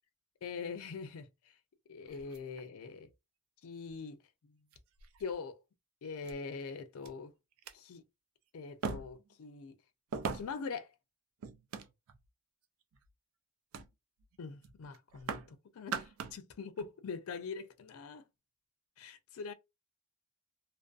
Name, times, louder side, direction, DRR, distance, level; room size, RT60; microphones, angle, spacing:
voice 1, 0.4-1.3 1.9-3.1 3.6-4.2 4.4-4.6 5.2-5.6 6.0-7.3 7.7-8.0 8.5-9.8 10.3-10.9 14.4-18.2 19.0-19.5, left 5 dB, 75° left, 0.4 m, -43 dB
sound 1, 2.1-3.1 4.0-4.1 4.7-5.3 6.2-6.3 7.0-7.1 7.5-7.7 8.8-9.3 10.1-10.7 11.4-12.3 12.8-13.1 13.7-13.9 14.2-14.4 14.6-15.5 15.8-16.4 16.8-16.9, right 5 dB, 75° right, 0.4 m, -41 dB
2.4 x 2.2 x 2.3 m
head